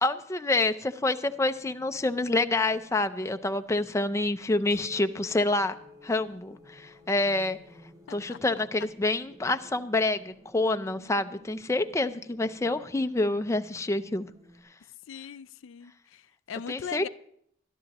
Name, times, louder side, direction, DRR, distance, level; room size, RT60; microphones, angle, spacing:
voice 1, 0.0-5.7 6.0-7.6 8.1-14.3 16.7-17.1, left 2 dB, 15° left, 0.5 m, -27 dB
sound 1, 0.9-14.6, equal, 20° right, 3.4 m, -56 dB
sound 2, 4.7-10.5, left 4 dB, 50° right, 4.7 m, -53 dB
voice 2, 8.1-8.4 15.1-17.1, left 8 dB, 85° left, 0.4 m, -40 dB
22.5 x 12.0 x 2.9 m
head